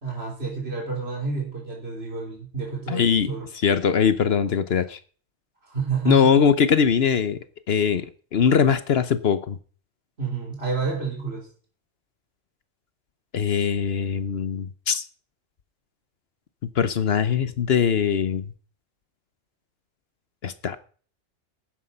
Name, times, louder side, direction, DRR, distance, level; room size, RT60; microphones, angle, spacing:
voice 1, 0.0-3.5 5.7-6.5 10.2-11.5, right 5 dB, 60° right, 0 dB, 3.6 m, -29 dB
voice 2, 2.9-3.3 3.6-5.0 6.0-7.4 7.7-8.1 8.3-9.6 13.3-15.0 16.8-18.4 20.4-20.8, left 7 dB, 60° left, 13 dB, 1.0 m, -21 dB
12.5 x 9.7 x 5.3 m, 0.42 s
omnidirectional pair, 1.2 m